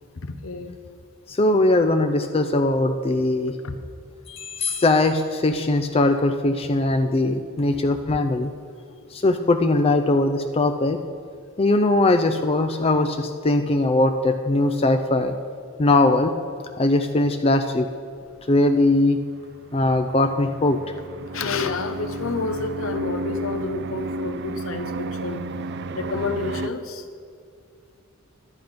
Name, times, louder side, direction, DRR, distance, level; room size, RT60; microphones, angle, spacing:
voice 1, 0.2-0.7 3.6-3.8 21.3-25.4 25.9-27.0, left 3 dB, 70° left, 7 dB, 0.8 m, -29 dB
voice 2, 1.3-3.5 4.3-8.5 9.1-11.0 11.6-15.3 15.8-16.3 16.8-17.9 18.5-19.2 19.7-20.8, left 2 dB, 30° left, 6 dB, 0.4 m, -20 dB
sound 1, 19.4-26.7, right 2 dB, 55° right, 0.5 m, -33 dB
11.5 x 9.9 x 5.2 m, 2.3 s
head